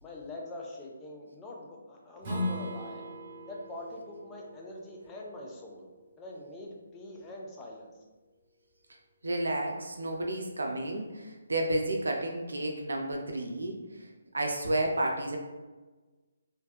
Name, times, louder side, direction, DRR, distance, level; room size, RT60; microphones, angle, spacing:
voice 1, 0.0-3.0 3.5-5.9 6.2-7.9, left 2 dB, 15° left, -1 dB, 0.4 m, -44 dB
Strum, 2.2-7.4, left 1 dB, 30° right, 1.0 m, -40 dB
voice 2, 9.2-13.8 14.3-15.4, right 1 dB, 80° right, 1 dB, 0.4 m, -31 dB
2.6 x 2.2 x 2.2 m, 1.2 s
figure-of-eight pair, 145°, 0 cm